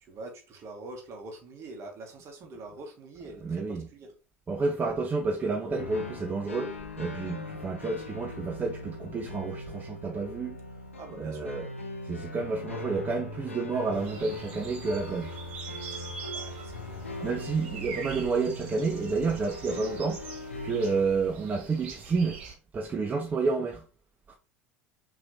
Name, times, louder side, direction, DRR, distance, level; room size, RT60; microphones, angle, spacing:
voice 1, 0.0-4.2 10.9-11.5 16.3-17.5, right 2 dB, 40° right, 1.5 m, -45 dB
voice 2, 3.4-3.9 4.5-10.6 11.2-11.7 12.0-15.3 17.2-20.3 20.6-22.4 22.7-23.8 24.3-24.4, right 4 dB, 25° right, 0.7 m, -30 dB
sound 1, 5.8-21.0, left 2 dB, 85° left, 0.7 m, -40 dB
sound 2, 13.9-22.5, right 5 dB, 65° right, 1.2 m, -44 dB
5.8 x 3.2 x 2.7 m
figure-of-eight pair, 70°, 7 cm